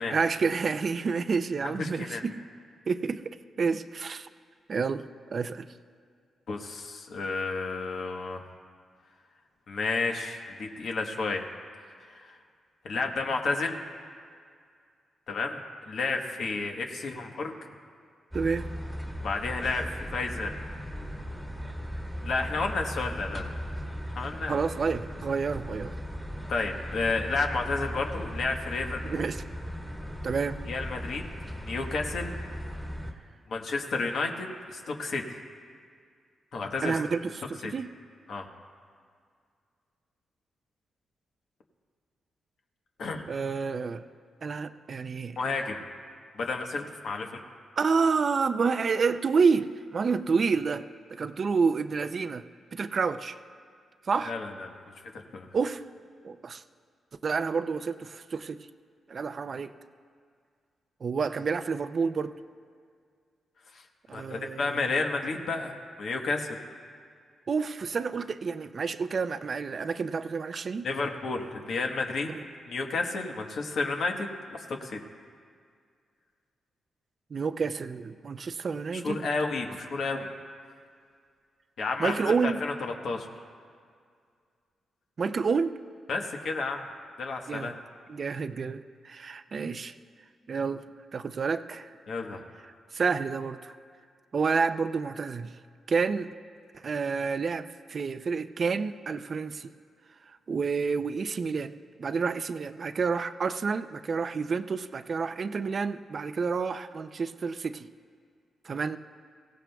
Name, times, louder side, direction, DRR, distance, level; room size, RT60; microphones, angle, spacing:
voice 1, 0.1-2.4 2.9-4.3 4.7-5.7 18.3-18.7 24.4-25.9 29.0-29.4 30.2-30.6 36.8-37.3 37.6-37.9 43.3-44.0 44.4-45.5 47.8-52.4 52.7-53.4 54.1-54.4 55.5-55.8 56.2-56.6 57.2-58.6 59.1-59.7 61.0-62.3 64.1-64.8 67.5-70.9 72.3-72.4 77.3-79.3 82.0-82.6 85.2-85.8 87.5-87.7 88.1-89.9 90.5-90.8 91.1-91.9 92.9-93.7 94.3-95.6 95.9-96.3 96.8-99.7 100.5-107.9 108.6-109.0, right 5 dB, 45° right, 11 dB, 0.5 m, -29 dB
voice 2, 1.6-2.2 6.5-8.4 9.7-11.5 12.1-12.4 12.8-13.8 15.3-17.5 19.2-20.5 22.2-23.6 24.1-24.6 26.5-29.3 30.7-31.2 31.6-32.4 33.5-35.2 36.5-37.0 37.6-37.7 38.3-38.5 43.0-43.3 45.4-45.8 46.3-47.4 54.3-54.8 55.1-55.5 63.7-63.8 64.1-66.6 70.8-72.3 72.7-74.3 74.7-75.0 78.9-80.3 81.8-83.3 86.1-86.8 87.2-87.7 92.1-92.4, left 3 dB, 65° left, 2 dB, 1.2 m, -31 dB
sound 1, 18.3-33.1, equal, ahead, 1.5 m, -37 dB
23.5 x 16.0 x 2.3 m, 2.1 s
cardioid pair, 115°, 0 cm